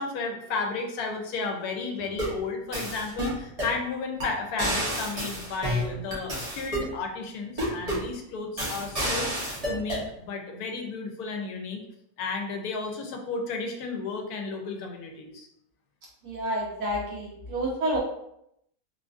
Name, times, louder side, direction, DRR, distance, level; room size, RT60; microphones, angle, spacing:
voice 1, 0.0-11.8 12.2-15.5, left 4 dB, 85° left, 3 dB, 1.1 m, -33 dB
sound 1, 2.0-2.4 2.7-3.8 4.2-4.3 4.6-6.9 7.6-8.1 8.6-10.0, equal, 30° right, 0.9 m, -30 dB
voice 2, 16.2-18.0, right 1 dB, 85° right, -4 dB, 1.5 m, -29 dB
3.6 x 2.5 x 2.4 m, 0.78 s
omnidirectional pair, 1.6 m